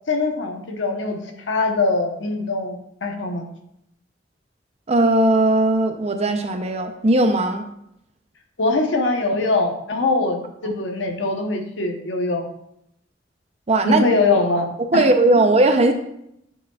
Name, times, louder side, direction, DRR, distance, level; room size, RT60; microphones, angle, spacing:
voice 1, 0.1-1.2 1.5-3.5 8.6-12.5 13.8-14.7 14.9-15.1, left 3 dB, 80° left, 3 dB, 1.0 m, -22 dB
voice 2, 4.9-7.6 13.7-14.0 14.9-15.9, right 2 dB, 35° right, 6 dB, 0.6 m, -18 dB
8.6 x 5.0 x 2.3 m, 0.77 s
head